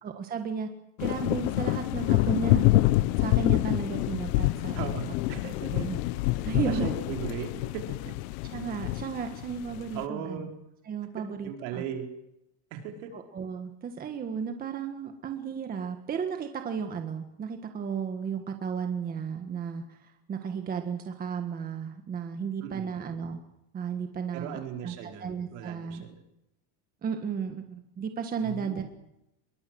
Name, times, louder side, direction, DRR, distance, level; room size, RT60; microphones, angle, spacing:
voice 1, 0.0-0.7 1.0-2.7 3.2-5.0 5.7-6.0 6.4-6.9 8.5-10.5 10.8-11.8 13.1-23.4 23.7-26.0 27.0-28.8, right 6 dB, 20° right, 5 dB, 1.6 m, -34 dB
sound 1, 1.0-10.0, left 17 dB, 65° left, 1.1 m, -27 dB
voice 2, 4.7-5.9 6.5-7.5 7.7-8.1 9.9-10.5 11.2-12.0 12.7-13.1 22.6-22.9 24.3-26.2 28.4-28.8, right 8 dB, 60° right, 4 dB, 5.2 m, -38 dB
25.5 x 22.5 x 7.8 m, 0.84 s
cardioid pair, 175°, 46 cm